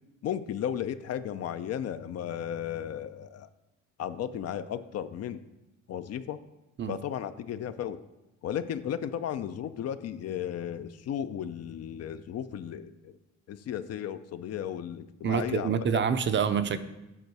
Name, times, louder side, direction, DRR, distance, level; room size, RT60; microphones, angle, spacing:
voice 1, 0.2-3.5 4.0-5.4 5.9-6.4 6.9-8.0 8.4-13.2 13.5-16.0, left 9 dB, 55° left, 12 dB, 0.5 m, -34 dB
voice 2, 15.2-16.8, right 7 dB, 40° right, 11 dB, 0.5 m, -27 dB
8.0 x 4.0 x 4.6 m, 0.96 s
cardioid pair, 90°, 30 cm